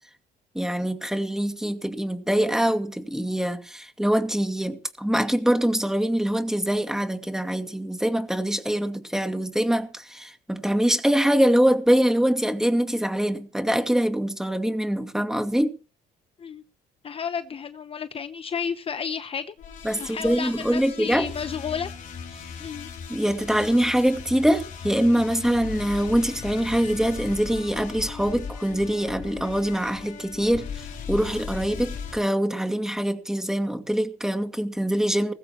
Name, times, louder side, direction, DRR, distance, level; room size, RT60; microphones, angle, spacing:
voice 1, 0.5-15.7 19.8-21.3 23.1-35.3, right 1 dB, 5° right, 2.3 m, -24 dB
voice 2, 17.0-19.5 20.0-21.9 22.6-22.9, left 7 dB, 35° left, 0.8 m, -32 dB
sound 1, 19.6-32.2, left 6 dB, 50° left, 4.5 m, -38 dB
19.5 x 15.5 x 3.1 m
cardioid pair, 110°, 17 cm